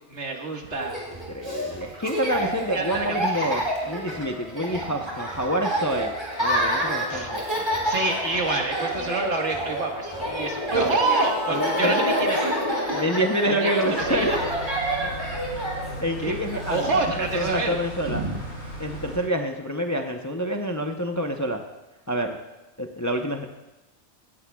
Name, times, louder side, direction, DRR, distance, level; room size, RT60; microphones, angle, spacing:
voice 1, 0.1-0.9 2.4-3.5 4.6-5.0 7.1-12.6 13.5-14.3 15.0-15.2 15.9-16.4 16.7-17.8 18.1-18.4, right 3 dB, 80° right, 1 dB, 1.9 m, -28 dB
Laughter, 0.7-17.5, equal, 20° right, 3.0 m, -29 dB
voice 2, 1.3-7.6 10.7-11.0 11.5-11.9 12.9-14.4 16.0-16.9 17.2-18.2 18.8-21.6 22.1-22.4 22.8-23.5, right 1 dB, 20° left, 3 dB, 0.6 m, -27 dB
sound 1, 6.6-14.5, left 1 dB, 65° left, 2.5 m, -34 dB
sound 2, 14.0-19.2, equal, 85° left, 5.6 m, -37 dB
17.0 x 14.5 x 2.3 m, 1.0 s
omnidirectional pair, 1.2 m